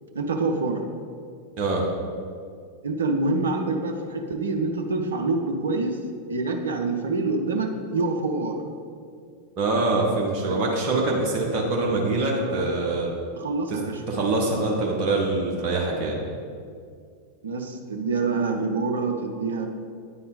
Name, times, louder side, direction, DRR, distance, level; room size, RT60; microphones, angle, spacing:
voice 1, 0.1-0.8 2.8-6.0 6.3-8.6 10.4-10.6 12.0-12.7 13.4-14.0 17.4-19.7, right 3 dB, 65° right, 4 dB, 0.5 m, -26 dB
voice 2, 9.6-13.1 13.7-13.8 14.1-16.2, right 2 dB, 40° right, -2 dB, 1.0 m, -24 dB
9.3 x 3.8 x 3.9 m, 2.2 s
figure-of-eight pair, 90°, 0 cm